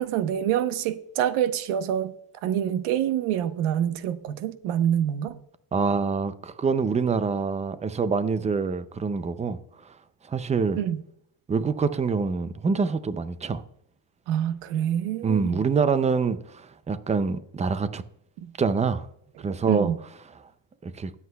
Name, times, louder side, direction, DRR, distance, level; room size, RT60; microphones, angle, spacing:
voice 1, 0.0-2.1 2.4-5.4 10.8-11.0 14.3-15.7 18.4-18.5 19.7-20.0, right 10 dB, 90° right, 0.9 m, -26 dB
voice 2, 5.7-9.6 9.9-10.0 10.3-10.8 11.5-13.6 15.2-18.0 18.6-19.1 19.4-19.9 20.8-21.1, right 5 dB, 15° right, 0.3 m, -25 dB
18.5 x 8.0 x 2.2 m
cardioid pair, 130°, 49 cm